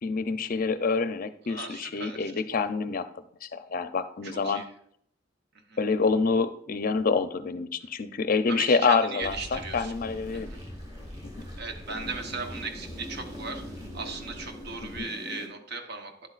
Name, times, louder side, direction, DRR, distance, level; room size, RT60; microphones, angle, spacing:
voice 1, 0.0-3.1 3.4-4.6 5.8-10.5 11.2-11.5 11.9-12.1 14.8-15.1, left 4 dB, 45° left, 11 dB, 0.5 m, -27 dB
voice 2, 1.5-2.3 4.2-4.6 5.7-5.8 8.5-9.9 10.3-10.6 11.6-16.3, right 4 dB, 60° right, 5 dB, 1.0 m, -37 dB
sound 1, 9.2-15.5, equal, 20° right, 1.9 m, -41 dB
10.0 x 7.9 x 2.5 m, 0.67 s
head